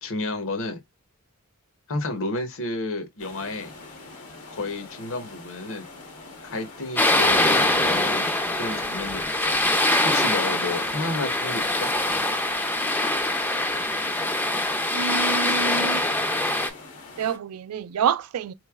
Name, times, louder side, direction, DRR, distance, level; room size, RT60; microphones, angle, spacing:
voice 1, 0.0-0.8 1.9-3.7 4.5-5.9 6.4-9.7 10.0-11.9, left 2 dB, 60° left, 0.9 m, -31 dB
sound 1, 3.2-17.4, left 3 dB, 80° left, 1.1 m, -44 dB
sound 2, 7.0-16.7, left 1 dB, 10° left, 0.4 m, -23 dB
voice 2, 14.9-16.1 17.2-18.5, right 7 dB, 80° right, 0.4 m, -27 dB
3.9 x 3.1 x 2.3 m
head